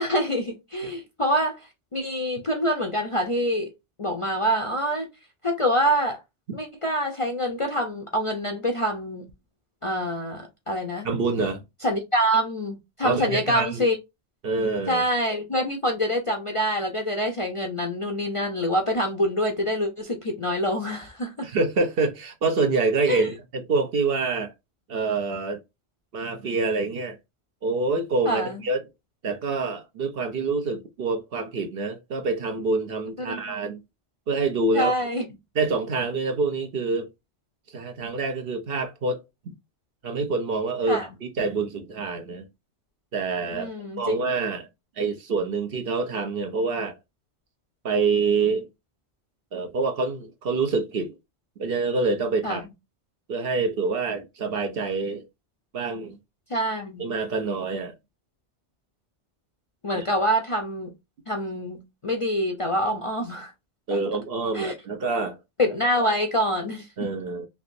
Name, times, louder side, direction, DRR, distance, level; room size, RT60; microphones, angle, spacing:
voice 1, 0.0-3.7 4.0-5.1 5.4-6.2 6.5-9.3 9.8-11.1 11.8-14.0 14.9-21.5 23.1-23.3 28.2-28.6 33.3-33.6 34.7-35.3 40.9-41.1 43.5-44.1 52.4-52.6 56.5-57.1 59.8-60.9 61.3-63.5 64.5-64.7 65.6-66.9, equal, 35° left, 0.5 m, -26 dB
voice 2, 11.0-11.6 13.0-13.8 14.4-15.0 21.4-24.5 24.9-25.6 26.1-27.2 27.6-28.8 29.2-33.8 34.3-35.1 35.5-37.1 37.7-39.2 39.5-39.6 40.0-42.4 43.1-43.7 44.0-44.7 45.0-47.0 47.8-48.7 49.5-51.1 51.6-52.7 53.3-55.2 55.7-56.2 57.0-57.9 60.0-60.1 63.9-65.4 67.0-67.5, right 3 dB, 60° right, 0.9 m, -26 dB
3.4 x 2.9 x 2.5 m
omnidirectional pair, 1.2 m